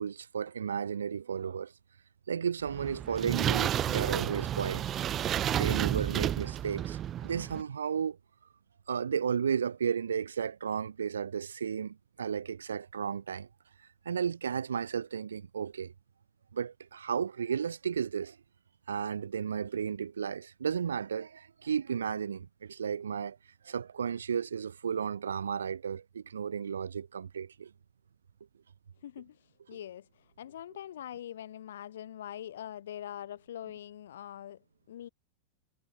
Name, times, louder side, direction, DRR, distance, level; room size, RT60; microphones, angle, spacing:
voice 1, 0.0-1.7 2.3-4.8 5.6-8.2 8.9-13.5 14.0-15.9 16.5-18.4 18.9-23.4 23.6-27.7 29.7-29.8, right 7 dB, 70° right, 4.2 m, -33 dB
sound 1, 2.7-7.6, right 11 dB, 30° right, 2.2 m, -31 dB
voice 2, 29.0-29.4 29.7-35.1, left 11 dB, 60° left, 2.4 m, -43 dB
figure-of-eight pair, 90°, 0 cm